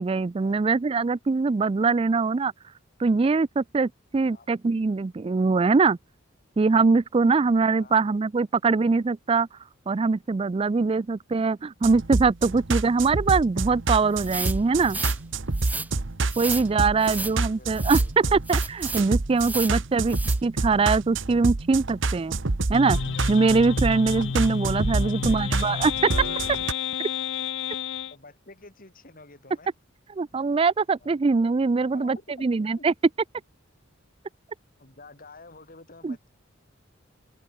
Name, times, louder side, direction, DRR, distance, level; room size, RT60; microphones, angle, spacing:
voice 1, 0.0-2.5 3.0-6.0 6.6-9.5 9.9-15.0 16.4-18.0 18.3-22.4 22.7-23.0 23.3-26.1 30.2-32.9 36.0-36.1, right 4 dB, 30° right, 0.4 m, -23 dB
sound 1, 11.8-26.7, right 3 dB, 70° right, 1.1 m, -28 dB
sound 2, 14.2-15.2 15.5-15.9 16.3-16.7 17.0-17.3 17.7-18.1 18.5-19.1 19.4-19.8 20.1-20.4, right 3 dB, 10° right, 1.0 m, -33 dB
voice 2, 16.8-18.4 25.0-25.4 26.0-26.3 26.6-26.8 28.1-29.7 31.0-31.1 31.8-32.5 32.8-32.9 34.8-36.3, left 3 dB, 45° left, 4.0 m, -49 dB
sound 3, 22.7-28.1, left 7 dB, 65° left, 0.6 m, -30 dB
head